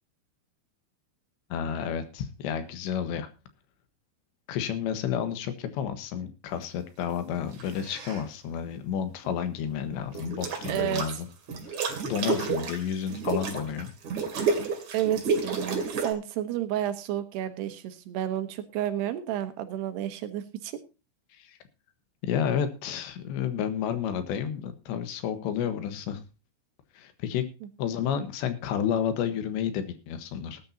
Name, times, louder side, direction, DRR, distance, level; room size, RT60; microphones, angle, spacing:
voice 1, 1.5-3.3 4.5-11.3 11.7-11.8 12.0-13.9 21.4-21.6 22.2-26.2 27.0-27.4 27.8-30.6, left 8 dB, 85° left, 10 dB, 3.6 m, -31 dB
sound 1, 7.5-8.2 10.1-11.1 11.5-16.1, right 5 dB, 45° right, 3.2 m, -30 dB
voice 2, 10.7-11.2 14.9-20.7, right 11 dB, 75° right, 9 dB, 3.1 m, -31 dB
19.0 x 10.0 x 2.8 m, 0.31 s
omnidirectional pair, 5.0 m